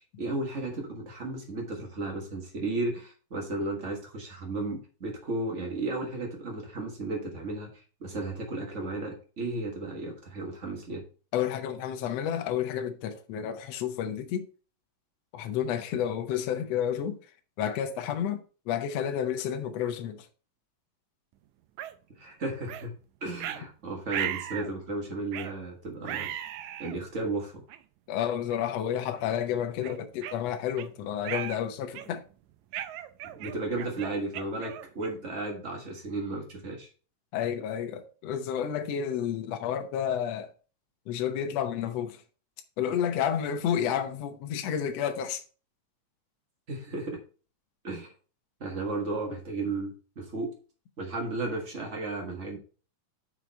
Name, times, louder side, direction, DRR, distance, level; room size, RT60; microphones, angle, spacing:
voice 1, 0.2-7.7 8.0-11.0 22.2-22.9 23.2-26.3 26.8-27.6 33.2-36.9 46.7-47.2 47.8-48.1 48.6-50.5 51.0-52.6, right 2 dB, 65° right, 0.7 m, -34 dB
voice 2, 11.3-14.5 15.3-17.2 17.6-18.4 18.7-20.3 28.1-32.2 37.3-40.5 41.1-42.2 42.8-45.4, left 9 dB, 65° left, 1.7 m, -30 dB
sound 1, 21.8-21.9 22.7-22.9 23.4-23.6 24.1-24.7 25.3-25.5 26.0-27.0 27.7-27.8 28.5-28.7 29.1-29.3 29.8-30.9 31.2-31.6 31.9-32.3 32.7-35.3, right 11 dB, 80° right, 1.7 m, -37 dB
6.5 x 6.3 x 4.2 m
omnidirectional pair, 4.0 m